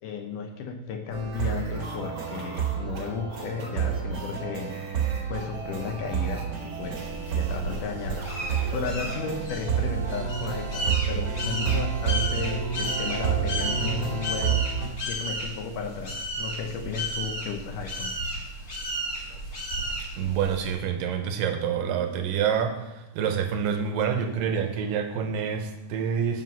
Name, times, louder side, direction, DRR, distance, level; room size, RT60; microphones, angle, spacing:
voice 1, 0.0-4.8 5.3-7.1 7.4-8.3 8.7-14.6 15.1-18.1 19.3-19.4, left 5 dB, 70° left, 4 dB, 2.2 m, -34 dB
sound 1, 1.1-14.9, right 8 dB, 40° right, 2.2 m, -30 dB
sound 2, 1.3-9.5, right 2 dB, 60° right, 1.0 m, -44 dB
sound 3, 6.8-20.7, equal, 30° left, 1.9 m, -34 dB
voice 2, 20.2-26.4, right 7 dB, 75° right, 6 dB, 2.5 m, -27 dB
7.7 x 7.6 x 5.5 m, 0.92 s
omnidirectional pair, 4.3 m